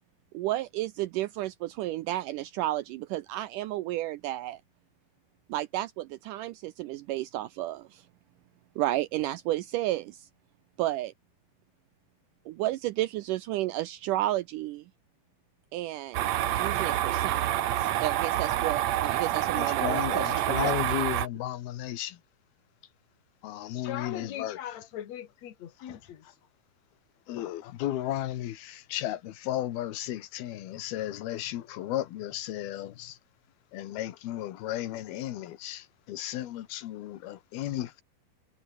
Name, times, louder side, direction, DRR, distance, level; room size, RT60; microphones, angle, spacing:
voice 1, 0.3-4.6 5.5-8.1 8.8-10.3 10.8-11.1 12.5-14.8 15.7-20.8, right 15 dB, 90° right, 1.9 m, -32 dB
sound 1, 16.1-21.3, right 12 dB, 65° right, 1.8 m, -28 dB
voice 2, 19.5-22.2 23.4-24.6 27.3-33.2 33.7-38.0, left 13 dB, 80° left, 3.3 m, -34 dB
voice 3, 23.6-26.4, left 10 dB, 50° left, 2.9 m, -40 dB
omnidirectional pair, 4.3 m